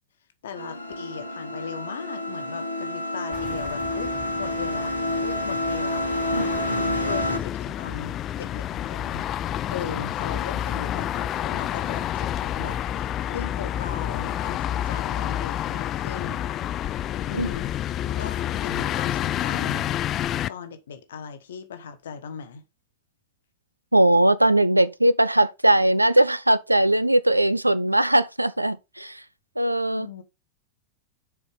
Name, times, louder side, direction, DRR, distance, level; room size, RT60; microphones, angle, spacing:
voice 1, 0.4-6.5 7.0-9.3 9.7-16.5 17.3-20.0 20.5-22.6 29.9-30.2, left 7 dB, 60° left, 1.2 m, -38 dB
sound 1, 0.6-7.4, left 1 dB, 90° left, 1.5 m, -28 dB
sound 2, 3.3-20.5, left 11 dB, 30° left, 0.3 m, -29 dB
voice 2, 6.3-7.0 17.4-17.5 23.9-29.2 29.6-30.1, right 1 dB, 85° right, 0.5 m, -20 dB
6.9 x 4.5 x 5.0 m
figure-of-eight pair, 90°, 0 cm